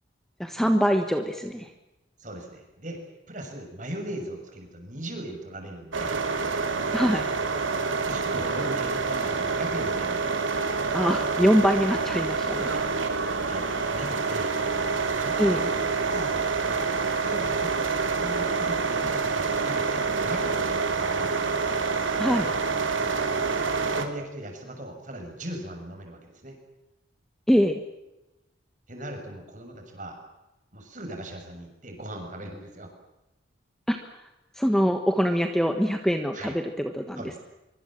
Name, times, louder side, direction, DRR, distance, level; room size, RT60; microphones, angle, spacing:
voice 1, 0.4-1.7 6.9-7.3 10.9-12.8 15.4-15.6 22.2-22.5 27.5-27.8 33.9-34.0 34.6-37.4, equal, ahead, 6 dB, 1.3 m, -24 dB
voice 2, 2.2-3.0 3.3-6.2 8.1-10.4 13.5-14.5 15.1-15.7 16.1-16.9 17.2-21.3 23.6-26.6 28.9-30.2 30.7-32.9 36.3-36.6 37.2-37.4, right 1 dB, 40° right, 4 dB, 6.5 m, -38 dB
sound 1, 5.9-24.0, right 4 dB, 90° right, 3.0 m, -27 dB
24.5 x 24.5 x 7.6 m, 0.96 s
head